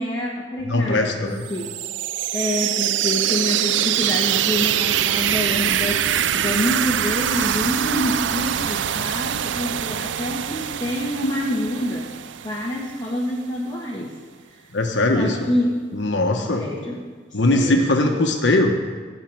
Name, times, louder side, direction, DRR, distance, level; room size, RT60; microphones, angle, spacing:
voice 1, 0.0-1.7 2.3-12.1 12.4-14.1 15.1-15.7 16.3-17.1 17.5-17.8, left 1 dB, 20° left, -4 dB, 1.4 m, -27 dB
voice 2, 0.6-1.4 14.7-15.5 15.9-16.7 17.3-18.7, left 2 dB, 75° left, 2 dB, 1.2 m, -20 dB
sound 1, 1.4-13.1, right 10 dB, 80° right, 0.4 m, -24 dB
12.5 x 5.7 x 9.0 m, 1.5 s
head